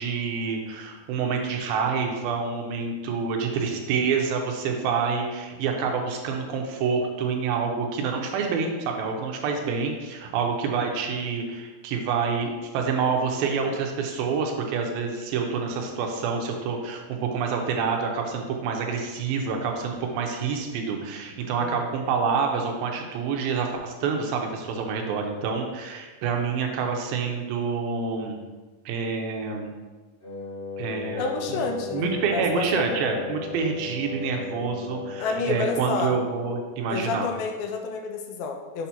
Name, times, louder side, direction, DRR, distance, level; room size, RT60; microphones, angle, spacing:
voice 1, 0.0-28.4 28.9-29.7 30.8-31.2 31.5-31.6 31.9-37.3, right 5 dB, 80° right, 2 dB, 2.5 m, -27 dB
Wind instrument woodwind instrument, 30.2-36.8, left 4 dB, 35° left, 0.9 m, -36 dB
voice 2, 31.2-32.9 35.2-36.2 36.9-38.9, left 4 dB, 80° left, 4 dB, 2.4 m, -29 dB
6.7 x 2.8 x 5.6 m, 1.3 s
omnidirectional pair, 4.4 m